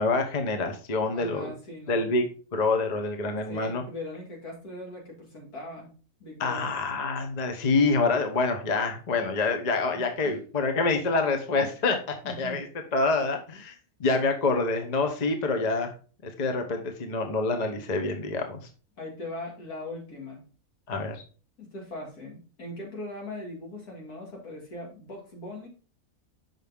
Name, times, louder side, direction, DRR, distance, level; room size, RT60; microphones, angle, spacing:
voice 1, 0.0-1.5 1.9-3.8 6.4-12.7 12.9-15.9 16.2-18.6 20.9-21.2, left 3 dB, 35° left, 5 dB, 0.9 m, -26 dB
voice 2, 1.1-2.1 3.5-5.9 6.2-6.7 9.9-10.4 12.2-12.6 19.0-20.4 21.6-25.7, left 1 dB, 80° left, -1 dB, 2.7 m, -40 dB
6.1 x 5.7 x 3.5 m, 0.37 s
omnidirectional pair, 1.6 m